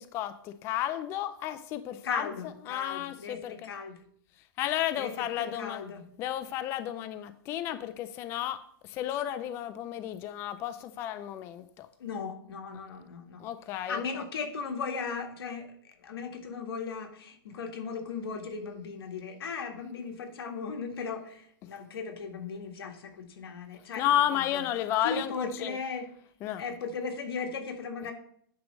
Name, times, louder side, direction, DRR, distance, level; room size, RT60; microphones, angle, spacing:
voice 1, 0.0-3.7 4.6-5.8 6.2-11.9 13.4-14.3 21.6-21.7 24.0-25.8 26.4-26.6, left 12 dB, 20° left, 12 dB, 0.3 m, -32 dB
voice 2, 2.0-4.0 5.0-6.0 12.0-13.5 13.9-15.7 16.0-24.0 24.3-24.6 25.0-26.1 26.6-28.1, left 5 dB, 85° left, 3 dB, 1.8 m, -37 dB
9.4 x 3.2 x 6.2 m, 0.64 s
hypercardioid pair, 155°, 12 cm